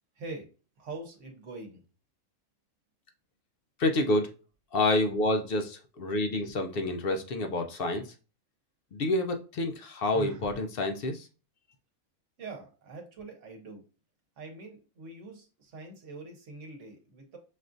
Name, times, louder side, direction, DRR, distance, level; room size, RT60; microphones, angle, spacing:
voice 1, 0.2-0.5 0.8-1.8 12.4-13.8 14.4-17.4, right 3 dB, 60° right, 3 dB, 1.2 m, -44 dB
voice 2, 3.8-4.3 4.7-8.1 8.9-11.3, left 2 dB, 60° left, 5 dB, 0.6 m, -28 dB
Sigh, 10.1-10.6, right 4 dB, 80° right, 1.1 m, -41 dB
6.2 x 2.4 x 2.5 m, 0.34 s
omnidirectional pair, 1.5 m